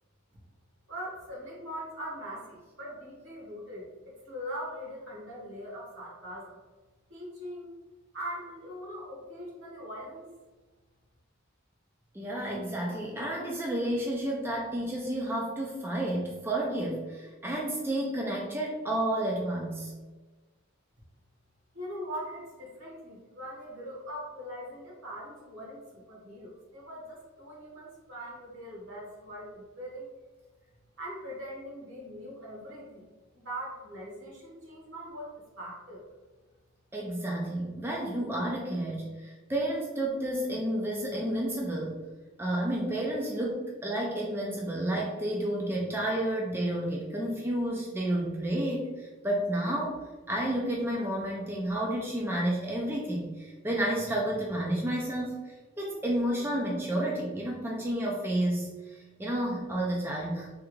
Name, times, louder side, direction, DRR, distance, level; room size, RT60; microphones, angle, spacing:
voice 1, 0.9-6.5 7.1-7.7 8.1-10.3 21.7-30.1 31.0-33.0 33.3-36.0, equal, 65° right, -4 dB, 1.4 m, -41 dB
voice 2, 12.1-19.9 36.9-42.0 42.4-50.0 50.3-60.5, right 1 dB, 10° right, -2 dB, 0.4 m, -31 dB
3.4 x 2.4 x 3.0 m, 1.3 s
head